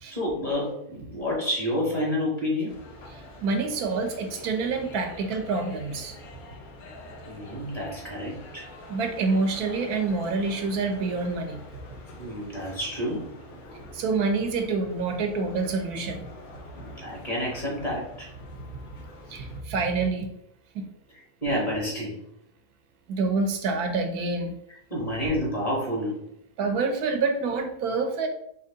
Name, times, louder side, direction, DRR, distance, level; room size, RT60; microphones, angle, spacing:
voice 1, 0.1-2.8 7.3-8.7 12.2-13.3 16.7-18.3 21.4-22.2 24.9-26.2, left 1 dB, 25° left, -4 dB, 1.4 m, -29 dB
sound 1, 2.7-19.6, left 1 dB, 70° left, 1.3 m, -45 dB
voice 2, 3.1-6.2 8.9-11.6 13.9-16.3 19.3-20.3 20.7-20.9 23.1-24.6 26.6-28.3, right 4 dB, 75° right, 5 dB, 1.2 m, -27 dB
4.5 x 3.1 x 3.8 m, 0.75 s
omnidirectional pair, 1.7 m